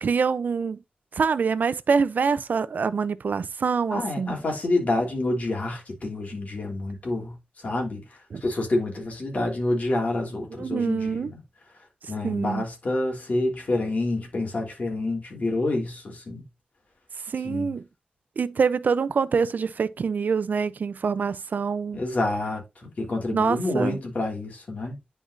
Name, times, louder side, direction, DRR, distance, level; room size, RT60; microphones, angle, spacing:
voice 1, 0.0-0.8 1.2-4.3 8.3-8.4 10.6-11.3 12.2-12.6 17.3-17.8 18.4-22.0 23.3-24.0, right 5 dB, 75° right, 0.6 m, -25 dB
voice 2, 3.9-7.3 7.6-8.0 8.4-11.4 12.1-16.4 17.4-17.7 21.9-24.9, left 2 dB, 55° left, 3.3 m, -28 dB
10.0 x 4.8 x 2.6 m
wide cardioid pair, 125°, 3 cm